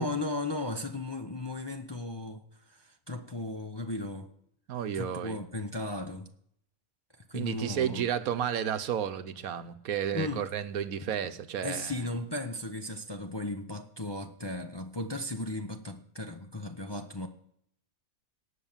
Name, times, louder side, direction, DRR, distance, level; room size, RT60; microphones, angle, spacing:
voice 1, 0.0-4.3 4.9-6.3 7.3-8.1 10.1-10.5 11.0-11.1 11.6-17.3, left 2 dB, 25° left, 0.6 m, -36 dB
voice 2, 4.7-5.4 7.3-12.1, right 9 dB, 75° right, 1.3 m, -32 dB
18.0 x 6.5 x 7.3 m
omnidirectional pair, 1.5 m